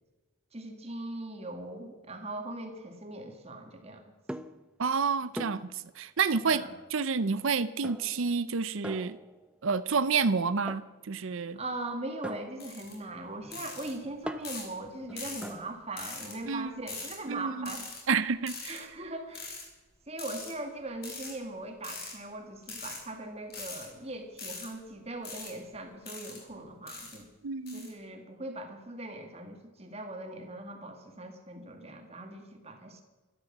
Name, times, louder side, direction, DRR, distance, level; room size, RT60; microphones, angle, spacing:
voice 1, 0.5-4.1 6.5-6.7 11.5-17.9 18.7-19.6 20.1-27.3 27.7-33.0, right 2 dB, 30° right, 5 dB, 1.8 m, -40 dB
sound 1, 4.3-4.7 5.4-5.8 6.3-6.6 7.8-8.3 8.8-9.6 10.7-11.0 12.2-15.8, right 1 dB, 5° right, 0.5 m, -43 dB
voice 2, 4.8-9.2 9.6-11.6 16.5-16.9 17.3-17.7 18.1-18.9 27.4-27.9, right 5 dB, 65° right, 14 dB, 0.6 m, -29 dB
sound 2, 12.6-12.9 13.5-13.9 14.4-14.7 15.2-15.5 16.0-16.3 16.9-17.1 17.6-18.0 18.5-18.8 19.3-19.6 20.2-20.5 21.0-21.3 21.8-22.1 22.6-23.0 23.5-23.8 24.4-24.7 25.2-25.5 26.0-26.4 26.9-27.2 27.7-27.9, left 4 dB, 45° left, 4.9 m, -41 dB
13.0 x 12.5 x 7.3 m, 1.2 s
head